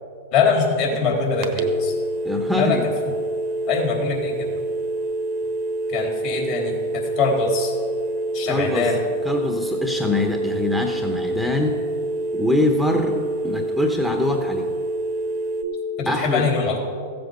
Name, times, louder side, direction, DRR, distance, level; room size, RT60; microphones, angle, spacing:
voice 1, 0.3-1.9 2.6-3.2 3.7-4.5 5.9-7.7 8.3-9.0 16.0-16.8, left 4 dB, 50° left, 0 dB, 3.6 m, -23 dB
sound 1, 1.4-15.6, right 2 dB, 45° right, 1.1 m, -27 dB
voice 2, 2.2-2.8 8.5-8.9 9.2-11.8 12.3-14.6 16.1-16.5, left 2 dB, ahead, 2 dB, 1.1 m, -23 dB
15.0 x 7.9 x 5.3 m, 2.2 s
hypercardioid pair, 105°, 0 cm